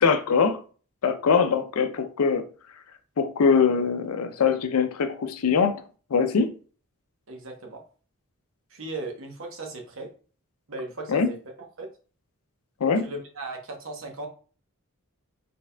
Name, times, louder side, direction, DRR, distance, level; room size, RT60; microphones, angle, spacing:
voice 1, 0.0-0.6 1.0-2.5 3.2-5.8 6.1-6.5 11.1-11.3 12.8-13.1, left 5 dB, 80° left, 0.5 m, -22 dB
voice 2, 7.3-7.8 8.7-10.1 10.7-11.3 11.8-11.9 13.0-14.3, right 2 dB, 60° right, 0.9 m, -37 dB
4.4 x 3.4 x 2.2 m
head